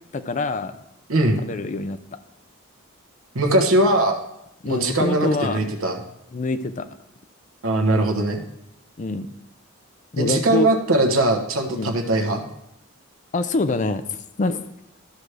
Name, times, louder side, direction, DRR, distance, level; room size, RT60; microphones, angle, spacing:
voice 1, 0.1-0.7 1.4-2.0 4.6-5.6 6.3-6.9 9.0-9.3 10.1-10.7 11.7-12.0 13.3-14.6, left 3 dB, 35° left, 10 dB, 0.5 m, -25 dB
voice 2, 1.1-1.4 3.3-4.2 4.7-6.0 7.6-8.4 10.2-12.4, right 1 dB, 80° right, 4 dB, 1.2 m, -20 dB
13.0 x 6.1 x 3.3 m, 0.82 s
head